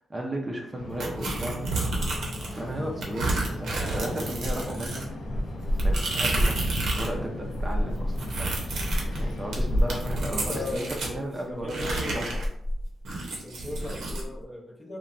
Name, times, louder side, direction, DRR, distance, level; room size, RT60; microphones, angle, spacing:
voice 1, 0.0-1.7 2.5-5.0 5.8-8.5 9.2-11.9 12.2-12.3, right 1 dB, 25° right, 0 dB, 0.4 m, -34 dB
sound 1, 0.7-10.7, left 1 dB, 70° left, 0.5 m, -38 dB
sound 2, 1.0-2.6 3.0-7.2 7.4-11.1 11.7-14.3, right 1 dB, 80° right, 0.7 m, -28 dB
voice 2, 10.2-12.4 13.3-15.0, left 2 dB, 20° left, -1 dB, 0.5 m, -38 dB
3.0 x 2.1 x 2.5 m, 0.79 s
cardioid pair, 100°, 0 cm